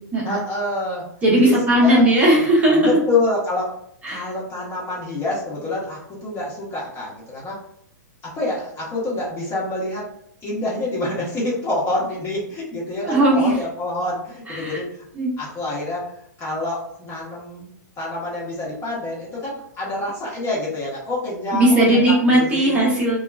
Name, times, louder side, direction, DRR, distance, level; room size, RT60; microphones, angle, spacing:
voice 1, 0.2-1.1 1.4-1.5 1.8-2.0 2.8-3.8 4.1-7.6 8.2-10.1 10.4-14.8 15.4-16.1 16.4-17.7 18.0-22.0 22.3-22.8, left 2 dB, 25° left, -6 dB, 1.2 m, -26 dB
voice 2, 1.2-3.0 4.0-4.3 13.0-13.5 14.5-14.8 15.1-15.3 21.5-23.2, right 1 dB, 15° right, -7 dB, 1.0 m, -17 dB
2.8 x 2.4 x 2.3 m, 0.70 s
hypercardioid pair, 120°, 10 cm